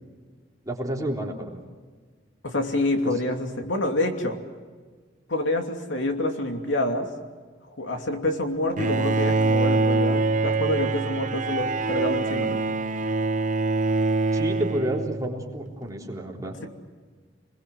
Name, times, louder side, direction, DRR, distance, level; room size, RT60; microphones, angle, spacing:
voice 1, 0.7-1.6 3.0-3.1 14.3-16.6, right 1 dB, 20° right, -1 dB, 3.7 m, -30 dB
voice 2, 2.4-4.4 5.3-7.1 7.7-12.6, left 1 dB, 85° left, 4 dB, 2.9 m, -27 dB
Bowed string instrument, 8.8-15.5, right 3 dB, 40° right, 0.8 m, -24 dB
28.5 x 21.5 x 7.9 m, 1.5 s
head